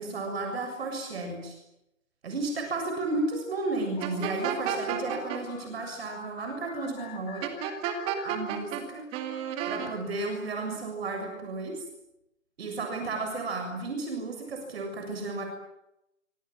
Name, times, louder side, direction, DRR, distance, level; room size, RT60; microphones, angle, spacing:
voice 1, 0.0-1.6 2.2-7.5 8.2-9.1 9.7-11.8 12.6-15.4, right 3 dB, 50° right, 3 dB, 7.2 m, -33 dB
sound 1, 4.0-9.1, left 12 dB, 15° left, 1.5 m, -48 dB
sound 2, 4.0-5.4 7.4-8.8 9.1-9.9, right 9 dB, 15° right, 2.2 m, -31 dB
26.5 x 25.0 x 7.7 m, 0.85 s
hypercardioid pair, 155°, 39 cm